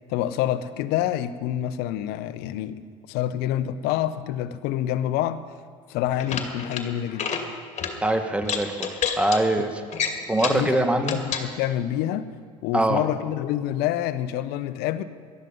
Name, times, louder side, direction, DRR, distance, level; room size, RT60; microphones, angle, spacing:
voice 1, 0.1-2.8 3.1-5.4 5.9-7.3 10.5-12.3 12.6-15.0, left 12 dB, 60° left, 14 dB, 0.9 m, -27 dB
sound 1, 6.2-6.8 7.1-7.4 7.8-7.9 8.4-9.4 9.9-10.6 11.0-11.5, left 7 dB, 40° left, 2.3 m, -28 dB
voice 2, 8.0-9.8 10.3-11.2 12.7-13.0, right 1 dB, 5° right, 6 dB, 1.8 m, -23 dB
18.5 x 12.5 x 5.4 m, 2.1 s
hypercardioid pair, 70°, 18 cm